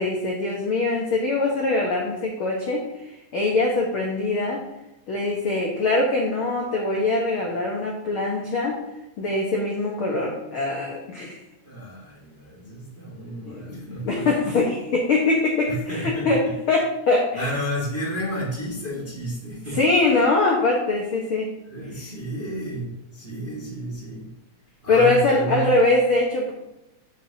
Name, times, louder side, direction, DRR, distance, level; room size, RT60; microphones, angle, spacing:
voice 1, 0.0-2.8 3.3-4.6 5.1-8.7 9.2-11.4 13.4-13.6 14.0-16.4 16.7-17.5 19.7-21.5 24.9-26.5, left 2 dB, 70° left, -2 dB, 1.2 m, -22 dB
voice 2, 11.6-14.5 15.7-16.5 17.3-19.8 21.6-24.3 24.8-25.7, right 1 dB, 25° right, -5 dB, 1.2 m, -31 dB
9.3 x 7.4 x 2.9 m, 0.91 s
omnidirectional pair, 4.2 m